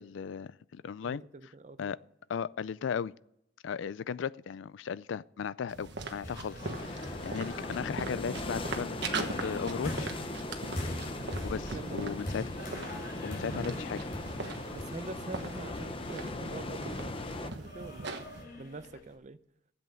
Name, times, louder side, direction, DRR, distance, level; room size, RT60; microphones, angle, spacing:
voice 1, 0.0-1.2 1.8-2.0 2.3-3.1 3.6-10.1 11.4-12.4 12.7-12.9 13.2-14.0, left 7 dB, 65° left, 0.3 m, -36 dB
voice 2, 1.0-1.9 11.1-11.4 11.7-12.2 12.4-12.6 14.7-18.1 18.6-19.4, right 3 dB, 35° right, 0.6 m, -45 dB
sound 1, 5.7-18.4, right 3 dB, 60° right, 1.3 m, -41 dB
sound 2, 6.2-19.1, left 1 dB, 45° left, 3.5 m, -44 dB
sound 3, 6.6-17.5, left 2 dB, 25° left, 0.8 m, -39 dB
12.5 x 8.0 x 6.3 m
head